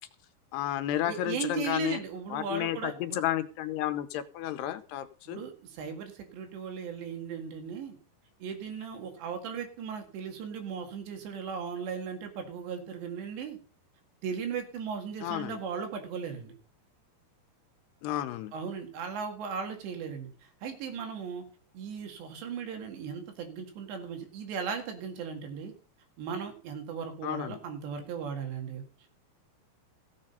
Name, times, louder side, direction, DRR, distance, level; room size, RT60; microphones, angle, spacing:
voice 1, 0.5-2.0 2.3-5.4 15.2-15.6 18.0-18.5 27.2-27.6, left 13 dB, 80° left, 11 dB, 2.7 m, -32 dB
voice 2, 1.0-3.2 5.3-8.0 8.4-13.6 14.2-16.5 18.5-21.5 21.7-25.7 26.2-29.1, right 6 dB, 80° right, 5 dB, 4.2 m, -37 dB
15.5 x 7.7 x 5.4 m, 0.37 s
omnidirectional pair, 4.9 m